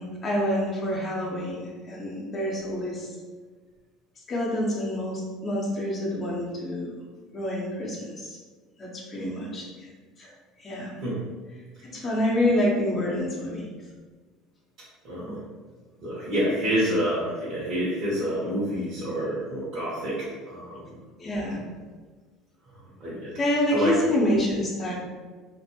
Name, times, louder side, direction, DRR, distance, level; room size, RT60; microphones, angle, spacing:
voice 1, 0.0-3.1 4.3-6.9 7.3-8.4 8.8-9.9 10.2-10.3 10.6-10.9 11.8-13.7 21.2-21.6 23.4-24.9, left 1 dB, 35° left, -3 dB, 0.7 m, -27 dB
voice 2, 15.0-15.4 16.0-21.0 22.7-23.3 23.7-24.0, equal, 55° right, -10 dB, 1.1 m, -28 dB
2.5 x 2.5 x 2.7 m, 1.4 s
supercardioid pair, 95°, 0 cm